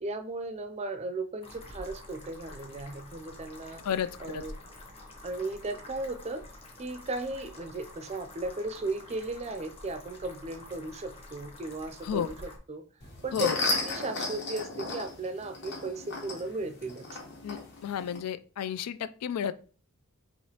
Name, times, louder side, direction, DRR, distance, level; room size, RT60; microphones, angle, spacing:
voice 1, 0.0-3.8 4.2-4.5 5.2-6.4 6.8-12.8 13.2-13.5 13.9-17.1, right 2 dB, 30° right, 8 dB, 0.4 m, -36 dB
sound 1, 1.4-12.6, left 1 dB, 25° left, 0.9 m, -48 dB
voice 2, 3.8-4.4 12.0-12.3 13.3-13.6 17.4-19.5, left 8 dB, 90° left, 14 dB, 0.4 m, -32 dB
sound 2, 13.0-18.2, left 2 dB, 50° left, 1.2 m, -35 dB
4.9 x 3.1 x 2.8 m, 0.38 s
head